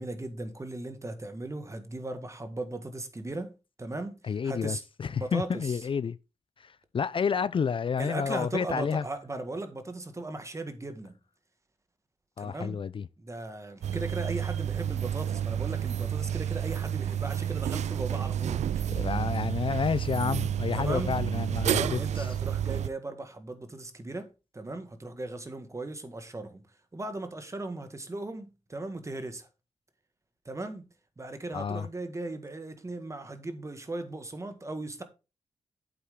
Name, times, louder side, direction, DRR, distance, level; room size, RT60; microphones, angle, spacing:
voice 1, 0.0-4.8 5.1-5.8 8.0-11.2 12.4-12.8 13.2-19.1 20.7-21.2 21.7-26.7 26.9-29.5 30.5-30.8 31.2-35.0, right 2 dB, 25° right, 1.7 m, -37 dB
voice 2, 4.2-6.2 6.6-9.0 12.4-13.1 18.9-22.3 31.5-31.9, left 6 dB, 50° left, 0.4 m, -30 dB
sound 1, 13.8-22.9, right 9 dB, 90° right, 0.4 m, -30 dB
8.6 x 8.1 x 3.7 m
wide cardioid pair, 90°, 12 cm